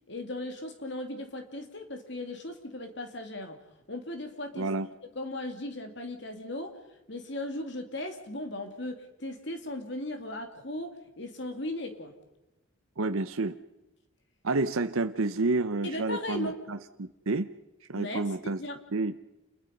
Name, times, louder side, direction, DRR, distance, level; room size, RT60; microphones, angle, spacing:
voice 1, 0.1-3.6 3.9-4.7 5.1-6.8 7.1-12.1 15.8-16.6 18.0-18.8, left 1 dB, 55° left, 5 dB, 2.8 m, -37 dB
voice 2, 4.6-4.9 13.0-13.6 14.4-17.5 17.9-18.6 18.9-19.2, right 3 dB, 85° right, 9 dB, 0.9 m, -29 dB
28.5 x 22.0 x 5.4 m, 0.99 s
head